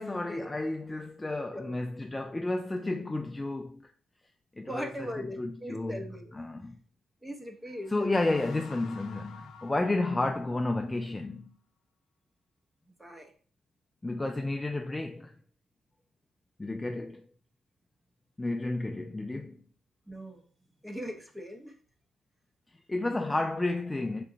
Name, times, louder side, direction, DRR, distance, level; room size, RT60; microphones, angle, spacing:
voice 1, 0.0-3.9 4.6-4.9 5.2-6.0 6.3-6.8 7.9-11.5 14.0-15.3 16.6-17.2 18.4-19.6 22.9-24.2, left 2 dB, 15° left, 0.3 m, -31 dB
voice 2, 4.6-6.4 7.2-8.1 13.0-13.3 20.1-20.4 20.8-21.8, equal, 10° right, 0.8 m, -40 dB
sound 1, 7.6-11.1, left 6 dB, 75° left, 0.5 m, -51 dB
3.7 x 2.1 x 3.8 m
cardioid pair, 90°, 0 cm